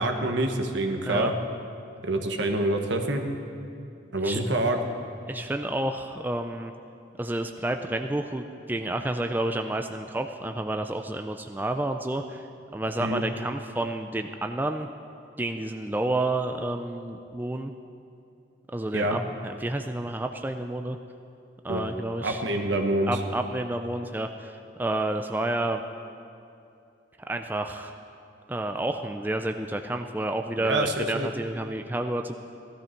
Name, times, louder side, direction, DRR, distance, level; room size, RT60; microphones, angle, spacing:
voice 1, 0.0-1.3 2.0-3.2 4.1-4.8 13.0-13.2 18.9-19.2 21.7-21.8 22.2-23.1 30.6-31.3, right 1 dB, 75° right, 4 dB, 1.2 m, -26 dB
voice 2, 5.3-6.7 7.2-12.5 12.7-14.9 15.4-17.7 18.7-21.0 21.6-22.4 23.1-25.8 27.3-27.9 28.5-32.4, right 1 dB, 10° right, 6 dB, 0.4 m, -30 dB
16.5 x 13.0 x 4.5 m, 2.6 s
head